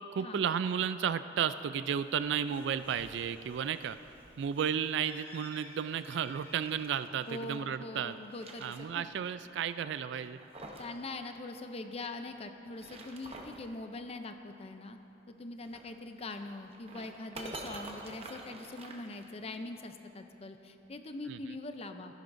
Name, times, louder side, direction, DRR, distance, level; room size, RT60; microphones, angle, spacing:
voice 1, 0.1-4.0 4.4-8.1 8.6-10.4 21.3-21.4, right 8 dB, 70° right, 13 dB, 0.3 m, -33 dB
Bird, 1.9-6.9, equal, 10° left, 1.2 m, -55 dB
sound 1, 5.8-7.6 8.0-9.3 9.5-9.6 10.1-11.0 11.2-11.3 12.6-13.7 15.6-19.7, right 2 dB, 30° right, 0.8 m, -48 dB
voice 2, 7.3-9.0 10.8-15.0 15.3-22.2, left 2 dB, 35° left, 7 dB, 0.5 m, -43 dB
14.5 x 10.5 x 2.6 m, 2.9 s
head